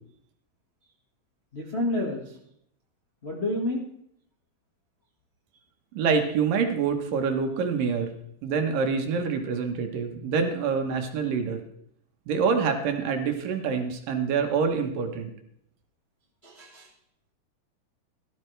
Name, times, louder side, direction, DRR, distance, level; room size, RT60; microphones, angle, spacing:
voice 1, 1.5-2.3 3.2-3.8 16.4-16.9, left 1 dB, 75° left, -2 dB, 0.5 m, -29 dB
voice 2, 5.9-8.1 8.4-11.6 12.3-15.3, right 5 dB, 65° right, 5 dB, 2.8 m, -26 dB
17.5 x 12.5 x 3.3 m, 0.71 s
omnidirectional pair, 4.4 m